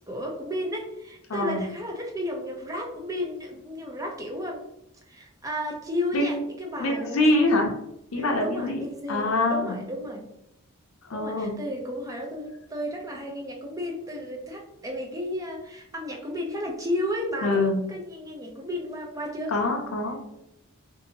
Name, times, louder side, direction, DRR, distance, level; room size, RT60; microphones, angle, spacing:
voice 1, 0.1-4.6 5.1-7.5 8.2-10.3 11.1-19.5, left 1 dB, 15° right, 0 dB, 0.5 m, -33 dB
voice 2, 1.3-1.6 6.1-6.4 6.8-7.7 8.1-8.8 9.1-9.7 11.1-11.5 17.4-17.8 19.5-20.2, left 2 dB, 75° left, 1 dB, 0.5 m, -24 dB
2.7 x 2.6 x 2.7 m, 0.81 s
head